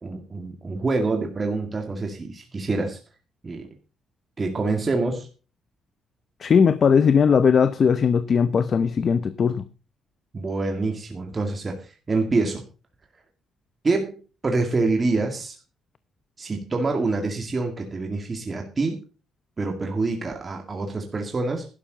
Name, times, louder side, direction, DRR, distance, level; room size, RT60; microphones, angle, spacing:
voice 1, 0.0-3.0 3.4-3.7 4.4-5.3 10.3-12.7 13.8-14.2 14.4-15.6 16.4-19.0 19.6-21.7, right 3 dB, 25° right, 2.1 m, -26 dB
voice 2, 6.4-9.7, left 6 dB, 45° left, 0.7 m, -19 dB
12.0 x 11.5 x 4.0 m
cardioid pair, 120°, 0 cm